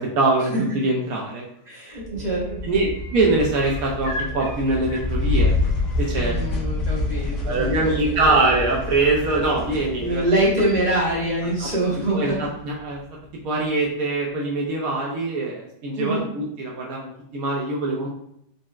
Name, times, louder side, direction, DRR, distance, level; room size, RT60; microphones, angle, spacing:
voice 1, 0.0-1.4 2.1-2.2 2.6-5.5 6.0-6.3 7.4-10.2 11.6-11.7 12.1-13.0 13.4-18.1, right 2 dB, 70° right, -2 dB, 0.9 m, -23 dB
sound 1, 1.6-1.9 2.2-6.3 7.9-8.0, equal, 90° left, 1.4 m, -38 dB
voice 2, 1.7-2.6 6.1-8.4 10.0-12.5 16.0-16.3, right 1 dB, 35° right, -6 dB, 0.8 m, -24 dB
sound 2, 2.0-12.6, left 2 dB, 55° left, 1.3 m, -28 dB
3.9 x 2.1 x 2.3 m, 0.74 s
omnidirectional pair, 1.9 m